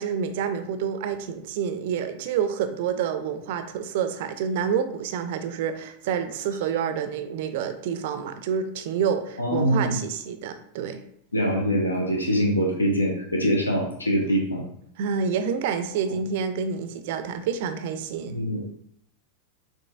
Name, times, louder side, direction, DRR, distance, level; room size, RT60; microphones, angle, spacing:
voice 1, 0.0-11.0 15.0-18.4, right 7 dB, 50° right, 9 dB, 0.4 m, -28 dB
voice 2, 9.4-10.0 11.3-14.6 18.3-18.7, equal, 80° left, 0 dB, 0.8 m, -24 dB
6.1 x 3.1 x 2.2 m, 0.67 s
figure-of-eight pair, 90°, 0 cm